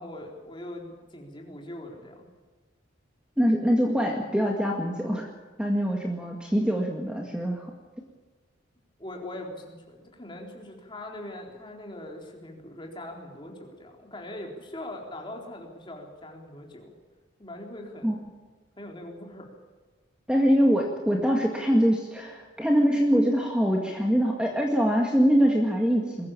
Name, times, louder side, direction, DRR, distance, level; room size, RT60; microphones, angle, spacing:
voice 1, 0.0-2.3 9.0-16.9 17.4-18.1 18.8-19.5, left 1 dB, 25° left, 1 dB, 3.9 m, -41 dB
voice 2, 3.4-5.3 5.6-7.7 18.0-18.2 20.3-26.3, equal, 5° right, 0 dB, 2.0 m, -23 dB
21.5 x 15.0 x 8.7 m, 1.4 s
head